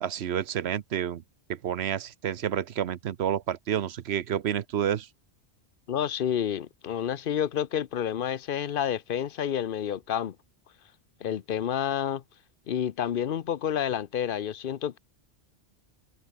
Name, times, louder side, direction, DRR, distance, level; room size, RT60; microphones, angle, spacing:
voice 1, 0.0-1.2 1.5-5.1, right 9 dB, 70° right, 1.0 m, -29 dB
voice 2, 5.9-10.4 11.2-12.2 12.7-15.0, left 9 dB, 55° left, 0.9 m, -29 dB
omnidirectional pair, 1.2 m